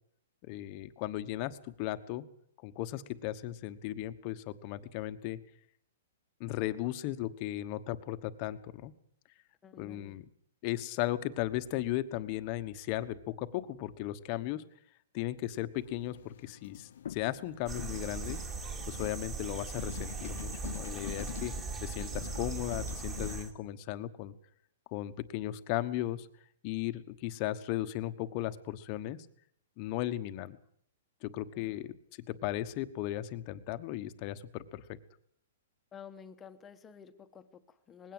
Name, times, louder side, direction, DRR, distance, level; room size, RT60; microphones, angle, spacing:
voice 1, 0.4-2.3 2.6-5.4 6.4-8.9 9.8-10.3 10.6-14.6 15.1-18.4 18.8-21.5 21.8-24.3 24.9-26.3 26.6-29.2 29.8-30.6 31.2-32.0 32.3-34.8, left 14 dB, 30° left, 11 dB, 1.2 m, -36 dB
voice 2, 9.6-10.2 31.5-31.7 35.9-38.1, left 7 dB, 15° left, 9 dB, 1.2 m, -51 dB
sound 1, 15.7-23.4, left 9 dB, 65° left, 0.7 m, -46 dB
sound 2, 17.7-23.5, right 4 dB, 15° right, 2.3 m, -39 dB
20.0 x 17.0 x 7.8 m, 0.67 s
hypercardioid pair, 165°, 0 cm